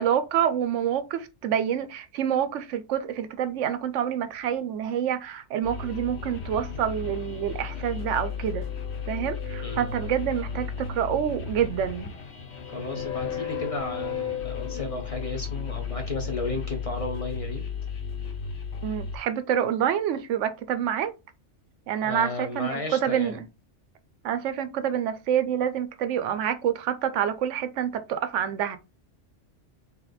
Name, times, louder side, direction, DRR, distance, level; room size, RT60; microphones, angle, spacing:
voice 1, 0.0-8.7 9.1-12.1 18.8-21.1 21.9-23.5 24.2-28.8, right 9 dB, 85° right, 0.9 m, -27 dB
sound 1, 5.6-19.2, left 6 dB, 65° left, 1.1 m, -34 dB
voice 2, 12.7-17.6 22.0-23.4, left 2 dB, 35° left, 0.8 m, -33 dB
3.3 x 3.0 x 3.9 m
omnidirectional pair, 1.2 m